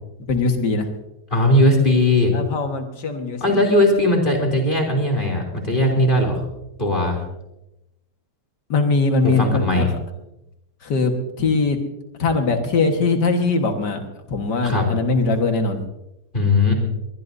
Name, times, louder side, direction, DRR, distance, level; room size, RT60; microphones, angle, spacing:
voice 1, 0.3-0.9 2.3-3.8 8.7-9.8 10.8-11.8 12.2-14.0 14.3-15.8, left 3 dB, 85° left, 5 dB, 2.2 m, -21 dB
voice 2, 1.3-2.3 3.4-6.4 6.8-7.2 9.2-9.9 14.6-14.8 16.3-16.7, left 1 dB, 30° left, 0 dB, 3.4 m, -18 dB
22.0 x 20.5 x 2.7 m, 0.90 s
omnidirectional pair, 1.8 m